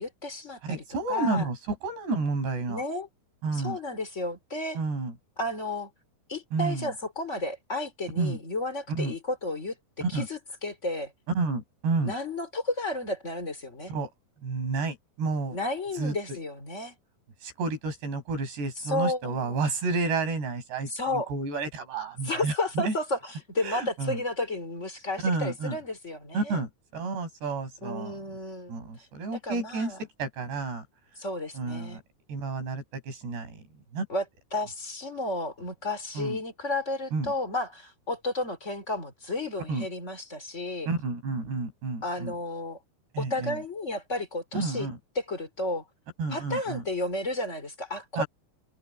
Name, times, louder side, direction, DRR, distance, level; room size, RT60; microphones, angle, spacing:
voice 1, 0.0-1.5 2.7-3.1 3.5-4.8 5.4-5.9 6.3-9.8 10.1-11.1 12.0-13.9 15.5-16.9 18.8-19.6 20.9-21.3 22.2-26.6 27.8-28.7 29.3-30.0 31.2-32.0 34.1-34.2 34.5-40.9 42.0-42.8 43.2-44.9 45.2-45.8 46.3-48.2, left 2 dB, 15° left, 3.9 m, -32 dB
voice 2, 0.6-2.8 3.4-3.8 4.7-5.2 6.5-6.9 8.2-8.4 8.9-9.2 10.0-10.3 11.3-12.1 13.9-14.1 14.4-15.6 16.0-16.1 17.4-22.9 23.6-24.2 25.2-25.8 26.3-28.2 28.7-30.8 31.5-32.0 32.3-33.6 33.9-34.1 36.2-36.4 37.1-37.3 39.7-39.9 40.9-42.3 43.1-43.6 44.5-45.0 46.2-46.8 48.2-48.3, right 3 dB, 85° right, 8.3 m, -30 dB
omnidirectional pair, 4.7 m